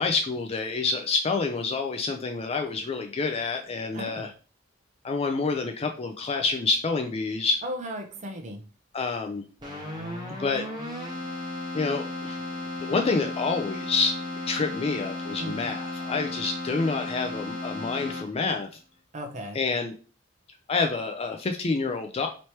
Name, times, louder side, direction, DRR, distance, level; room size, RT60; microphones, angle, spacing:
voice 1, 0.0-4.3 5.0-7.6 8.9-9.4 10.4-10.6 11.7-12.4 12.8-18.7 19.5-19.9 20.7-22.3, left 4 dB, 30° left, 4 dB, 0.4 m, -28 dB
voice 2, 3.9-4.3 7.6-8.6 15.4-15.7 19.1-19.7, equal, 40° right, 4 dB, 0.8 m, -36 dB
Keyboard (musical), 9.6-18.6, left 2 dB, 20° right, 1.3 m, -35 dB
3.2 x 2.9 x 4.4 m, 0.36 s
head